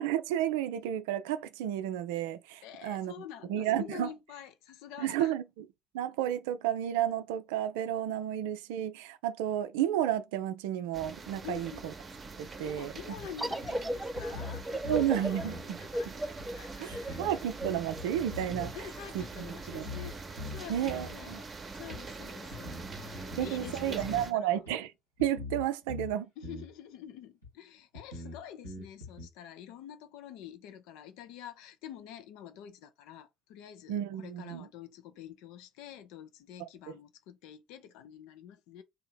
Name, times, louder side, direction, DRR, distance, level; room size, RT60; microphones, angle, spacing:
voice 1, 0.0-3.1 3.5-4.1 5.0-5.4 5.9-11.7 12.4-12.9 14.9-15.8 16.8-18.8 19.1-19.5 19.7-19.9 20.7-21.4 23.4-24.9 25.2-26.3 33.9-34.7 36.6-36.7, right 11 dB, 65° right, 0.3 m, -32 dB
voice 2, 2.6-5.3 11.4-11.9 12.6-16.1 16.5-17.4 18.7-20.2 20.5-21.5 21.7-24.6 26.4-38.8, left 10 dB, 60° left, 0.5 m, -47 dB
sound 1, 10.9-24.3, right 4 dB, 30° right, 0.8 m, -44 dB
sound 2, 13.1-13.2 13.6-13.7 14.2-15.1 15.4-15.7 16.4-16.5 16.9-18.7 19.2-19.3 19.8-20.1 20.4-21.2 21.9-22.0 22.5-24.3 24.6-24.7 25.2-26.1 26.4-26.7 27.4-27.5 27.9-29.3, left 2 dB, 85° left, 1.3 m, -42 dB
sound 3, 13.4-18.7, right 1 dB, 5° right, 0.5 m, -36 dB
2.8 x 2.5 x 4.2 m
figure-of-eight pair, 50°, 0 cm